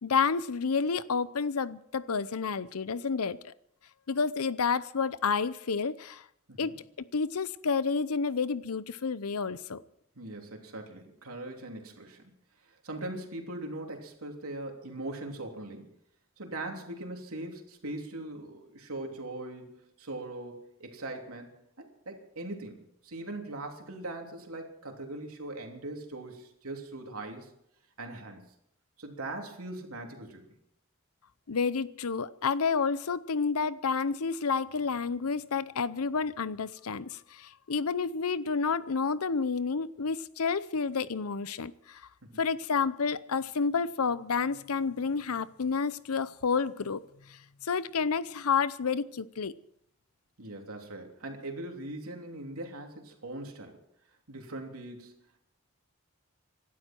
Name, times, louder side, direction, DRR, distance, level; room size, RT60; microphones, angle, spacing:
voice 1, 0.0-3.5 4.1-6.2 6.6-6.8 7.1-9.8 31.5-42.0 42.4-47.0 47.3-49.5, left 5 dB, 90° left, 0.7 m, -30 dB
voice 2, 10.1-12.3 12.6-15.9 16.4-27.5 28.0-28.4 29.0-30.5 42.2-42.4 50.4-53.8 54.3-55.4, right 2 dB, 85° right, 3.2 m, -41 dB
26.0 x 12.0 x 4.5 m
head